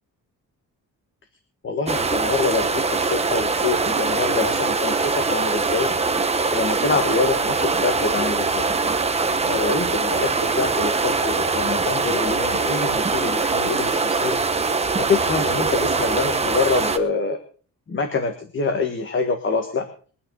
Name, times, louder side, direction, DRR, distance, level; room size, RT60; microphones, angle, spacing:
voice 1, 1.6-5.9 6.5-8.7 9.4-14.4 14.9-17.4 17.9-19.9, left 4 dB, 35° left, 6 dB, 1.7 m, -25 dB
sound 1, 1.9-17.0, right 4 dB, 20° right, 1.1 m, -22 dB
23.0 x 9.6 x 3.9 m, 0.40 s
wide cardioid pair, 155°, 33 cm